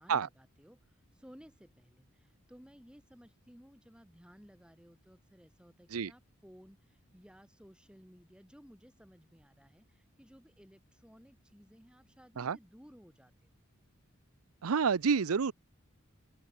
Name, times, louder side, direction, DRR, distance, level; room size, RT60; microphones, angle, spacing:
voice 1, 0.0-13.5, equal, 5° right, 6.6 m, -58 dB
voice 2, 14.6-15.5, right 6 dB, 80° right, 0.6 m, -29 dB
open air
head